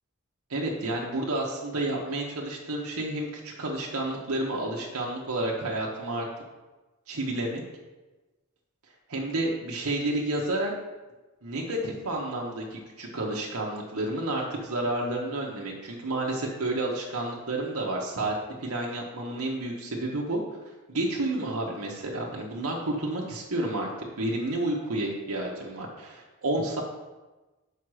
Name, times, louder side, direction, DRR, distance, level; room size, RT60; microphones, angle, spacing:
voice 1, 0.5-6.3 7.1-7.6 9.1-10.7 11.4-18.3 18.6-20.4 20.9-23.9 24.2-26.8, right 1 dB, 75° right, -2 dB, 1.0 m, -30 dB
6.1 x 5.1 x 4.8 m, 1.2 s
head